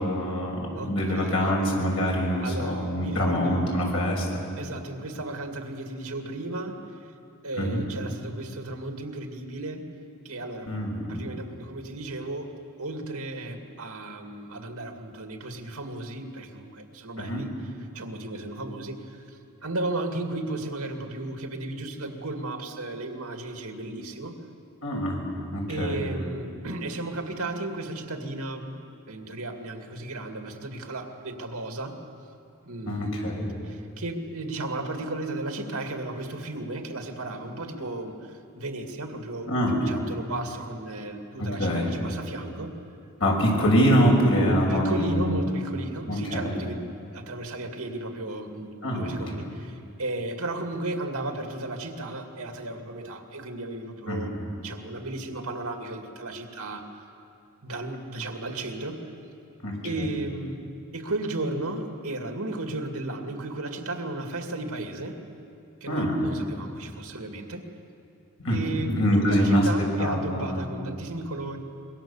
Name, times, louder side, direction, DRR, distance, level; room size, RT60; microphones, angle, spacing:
voice 1, 0.0-4.3 7.6-7.8 10.7-11.3 17.2-17.4 24.8-25.2 25.5-26.0 32.9-33.4 39.5-39.8 41.4-41.9 43.2-45.4 46.1-46.5 48.8-49.1 54.1-54.3 59.6-60.1 65.9-66.3 68.4-68.6 68.9-69.6 70.0-70.6, equal, 65° left, -1 dB, 6.4 m, -24 dB
voice 2, 0.7-1.6 2.4-3.8 4.6-6.8 7.4-9.9 10.2-10.7 11.0-12.5 12.8-17.5 17.9-24.4 25.7-28.7 29.1-32.0 32.6-33.2 33.6-42.7 44.7-46.8 47.1-54.3 54.6-56.9 57.6-59.0 59.8-60.6 60.9-65.2 65.8-67.6 68.5-71.6, right 2 dB, 75° right, 4 dB, 2.3 m, -34 dB
25.0 x 23.0 x 7.2 m, 2.5 s
head